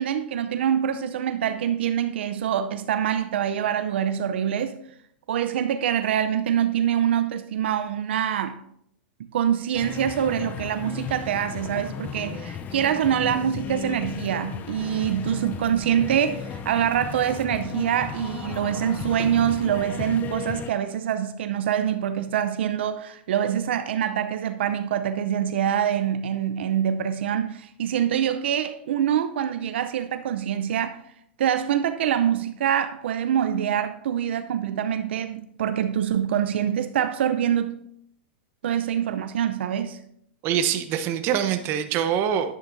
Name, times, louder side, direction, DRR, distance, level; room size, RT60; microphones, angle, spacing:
voice 1, 0.0-4.8 5.3-8.6 9.2-31.0 31.4-37.7 38.6-40.0, right 9 dB, 75° right, 0.6 m, -25 dB
sound 1, 9.7-20.7, left 8 dB, 25° left, 0.6 m, -35 dB
voice 2, 40.4-42.6, right 9 dB, 40° right, 0.9 m, -24 dB
10.5 x 8.8 x 2.7 m
hypercardioid pair, 135°, 6 cm